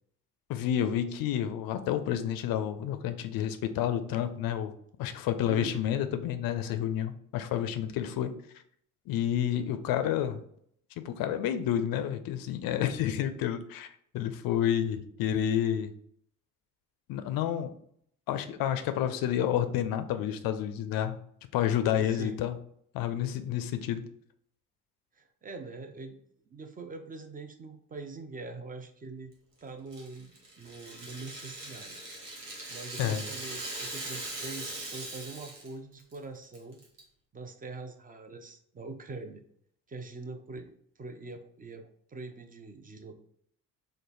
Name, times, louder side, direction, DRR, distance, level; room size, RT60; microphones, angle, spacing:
voice 1, 0.5-4.7 5.0-8.3 9.1-10.4 11.0-13.9 14.1-15.9 17.1-17.7 18.3-21.2 21.5-22.6 22.9-24.0 33.0-33.2, left 10 dB, 50° left, 9 dB, 0.5 m, -29 dB
voice 2, 5.5-6.0 22.0-22.4 25.1-26.2 26.5-29.3 29.6-36.8 37.3-39.4 39.9-43.1, right 3 dB, 20° right, 6 dB, 0.5 m, -44 dB
Rattle (instrument), 29.9-35.7 36.0-36.2 36.5-37.0, right 2 dB, 90° right, 0.8 m, -40 dB
3.2 x 2.1 x 4.0 m, 0.65 s
figure-of-eight pair, 45°, 46 cm